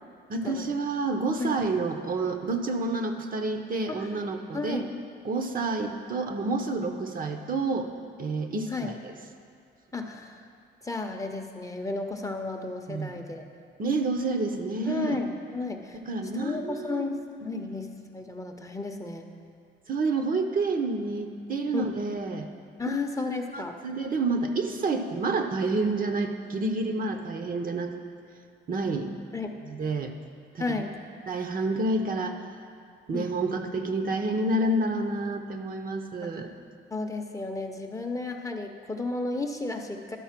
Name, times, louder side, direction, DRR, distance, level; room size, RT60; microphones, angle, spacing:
voice 1, 0.3-4.8 5.2-7.9 8.2-9.1 12.9-13.2 13.8-15.2 15.9-17.1 17.4-17.7 19.9-22.5 22.9-23.0 23.5-27.9 28.7-29.1 29.6-30.1 30.5-30.7 31.3-32.4 33.1-36.5, right 3 dB, 45° right, 5 dB, 0.7 m, -29 dB
voice 2, 4.5-4.9 8.7-8.9 9.9-10.4 10.8-13.5 14.9-16.0 16.3-19.3 21.7-21.9 22.8-23.8 29.3-29.5 30.6-30.9 33.1-33.3 36.2-36.5 36.9-40.2, left 3 dB, 15° left, 4 dB, 0.6 m, -33 dB
11.5 x 4.2 x 5.8 m, 2.3 s
cardioid pair, 90°, 20 cm